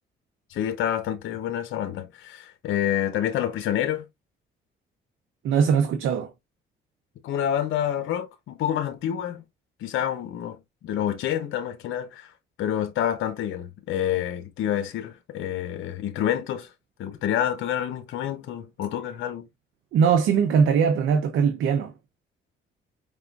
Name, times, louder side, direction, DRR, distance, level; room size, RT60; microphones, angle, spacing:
voice 1, 0.5-4.1 7.2-9.4 9.8-12.3 12.6-16.7 17.0-19.5, left 10 dB, 80° left, 0.8 m, -28 dB
voice 2, 5.4-6.3 19.9-21.9, right 6 dB, 80° right, 0.8 m, -21 dB
5.0 x 3.6 x 2.4 m
cardioid pair, 90°, 20 cm